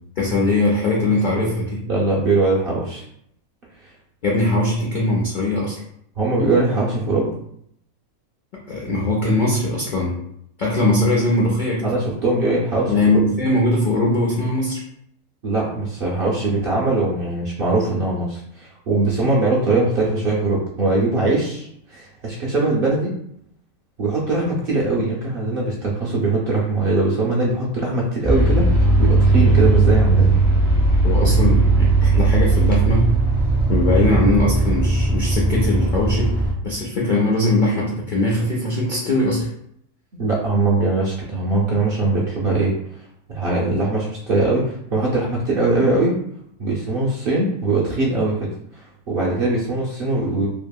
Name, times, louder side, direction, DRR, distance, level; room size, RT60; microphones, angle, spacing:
voice 1, 0.2-1.8 4.2-5.8 8.5-10.2 10.6-11.9 12.9-14.8 31.0-33.1 33.7-36.3 36.6-39.5, left 2 dB, 85° left, -4 dB, 0.4 m, -20 dB
voice 2, 1.9-3.0 6.2-7.3 11.8-13.2 15.4-23.1 24.0-30.3 31.2-31.3 33.9-34.1 40.1-43.0 43.3-46.2 46.6-50.5, right 2 dB, 60° right, -5 dB, 0.6 m, -21 dB
sound 1, 28.2-36.5, right 2 dB, ahead, 0.3 m, -17 dB
2.8 x 2.7 x 2.2 m, 0.71 s
omnidirectional pair, 1.5 m